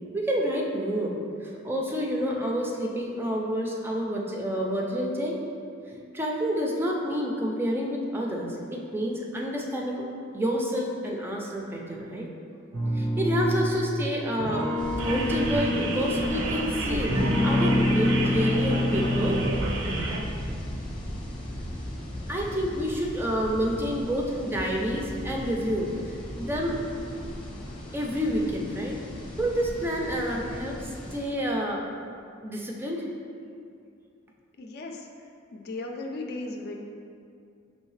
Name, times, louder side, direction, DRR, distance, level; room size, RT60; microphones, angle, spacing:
voice 1, 0.1-1.1 1.4-5.3 6.1-10.0 10.3-12.3 12.9-14.7 15.0-19.4 22.3-26.8 27.9-29.0 29.4-31.8 32.4-33.0, equal, 10° right, -1 dB, 0.4 m, -29 dB
sound 1, 12.7-13.8 14.4-16.7 17.1-19.7, left 1 dB, 85° right, 0.9 m, -26 dB
sound 2, 14.8-31.3, equal, 25° left, 0.7 m, -37 dB
sound 3, 15.0-20.2, right 2 dB, 65° right, 0.5 m, -31 dB
voice 2, 34.6-35.0 35.5-36.8, left 2 dB, 50° left, 2 dB, 0.4 m, -36 dB
5.3 x 3.1 x 3.1 m, 2.4 s
head